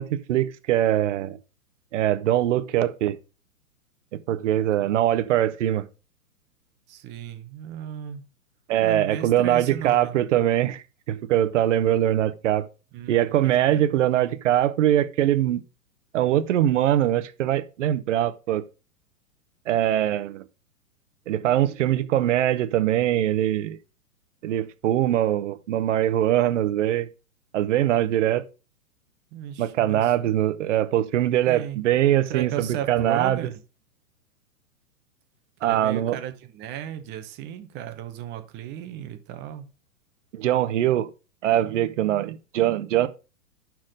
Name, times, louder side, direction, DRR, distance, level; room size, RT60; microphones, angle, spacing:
voice 1, 0.0-1.4 1.9-3.2 4.3-5.9 8.7-12.7 13.1-15.6 16.1-18.6 19.7-20.4 21.3-23.8 24.4-27.1 27.5-28.4 29.6-33.4 35.6-36.2 40.3-41.1 41.4-43.1, right 12 dB, 55° right, 1.0 m, -22 dB
voice 2, 6.9-8.2 8.8-10.2 12.9-13.8 29.3-30.1 31.5-31.8 32.3-33.6 35.6-39.7, right 10 dB, 25° right, 0.8 m, -35 dB
5.8 x 4.6 x 6.5 m
hypercardioid pair, 120°, 45 cm